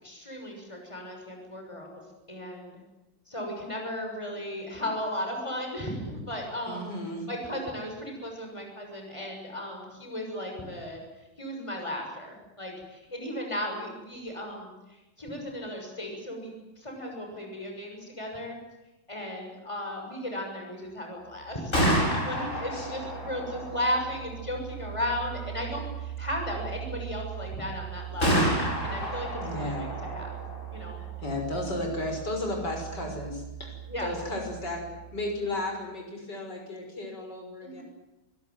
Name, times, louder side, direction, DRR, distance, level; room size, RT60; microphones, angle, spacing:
voice 1, 0.0-2.0 2.3-2.8 3.3-6.9 7.3-11.0 11.4-14.7 15.2-18.6 19.1-28.5 28.8-30.3 30.7-31.0 33.9-34.1 37.6-37.8, left 1 dB, 15° left, 2 dB, 6.8 m, -35 dB
voice 2, 6.6-7.3 22.7-22.9 29.4-29.9 31.0-34.9 35.1-37.8, left 1 dB, 55° left, 2 dB, 6.7 m, -34 dB
Gunshot gunfire, 21.5-35.3, right 1 dB, 35° left, 8.2 m, -32 dB
27.0 x 17.0 x 9.4 m, 0.99 s
omnidirectional pair, 2.2 m